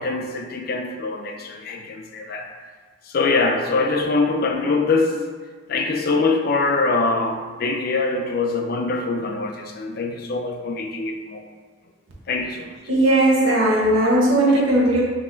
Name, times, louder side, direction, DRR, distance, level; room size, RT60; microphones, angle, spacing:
voice 1, 0.0-2.5 3.1-5.3 5.7-11.4 12.3-12.7, left 3 dB, 50° left, 4 dB, 0.4 m, -23 dB
voice 2, 12.9-15.0, right 1 dB, 90° right, -4 dB, 1.0 m, -17 dB
5.5 x 2.9 x 2.5 m, 1.5 s
head